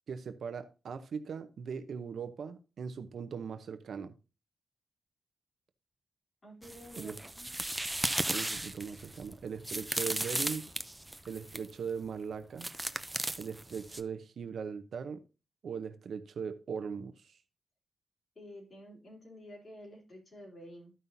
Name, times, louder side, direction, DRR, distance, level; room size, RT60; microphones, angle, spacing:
voice 1, 0.1-4.1 7.0-7.2 8.3-10.7 11.3-12.7 13.4-15.2 15.6-17.4, right 6 dB, 65° right, 0.8 m, -39 dB
voice 2, 6.4-7.5 18.4-20.9, equal, 30° left, 3.6 m, -50 dB
sound 1, 6.6-11.7 12.6-14.0, right 1 dB, 10° right, 0.6 m, -36 dB
13.5 x 5.5 x 2.7 m
cardioid pair, 105°, 0 cm